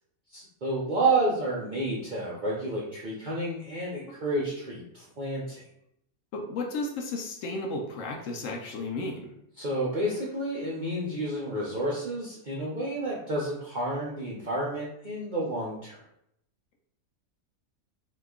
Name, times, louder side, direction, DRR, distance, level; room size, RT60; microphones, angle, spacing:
voice 1, 0.3-5.6 9.6-16.0, right 2 dB, 55° right, -5 dB, 0.5 m, -30 dB
voice 2, 6.3-9.3, left 2 dB, 70° left, 1 dB, 0.9 m, -33 dB
2.8 x 2.3 x 3.5 m, 0.76 s
omnidirectional pair, 1.5 m